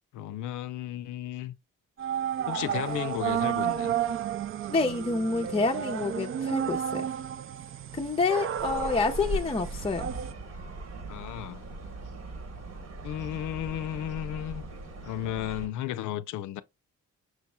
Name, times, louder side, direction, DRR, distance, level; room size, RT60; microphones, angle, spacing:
voice 1, 0.1-1.6 2.5-3.9 11.1-11.7 13.0-14.6 15.0-16.6, left 12 dB, 80° left, 0.5 m, -34 dB
sound 1, 2.0-10.3, right 9 dB, 45° right, 0.4 m, -32 dB
voice 2, 4.7-7.1 7.9-10.1, left 4 dB, 20° left, 0.5 m, -28 dB
sound 2, 8.6-15.7, right 2 dB, 60° right, 1.3 m, -39 dB
6.2 x 3.0 x 2.2 m
cardioid pair, 90°, 30 cm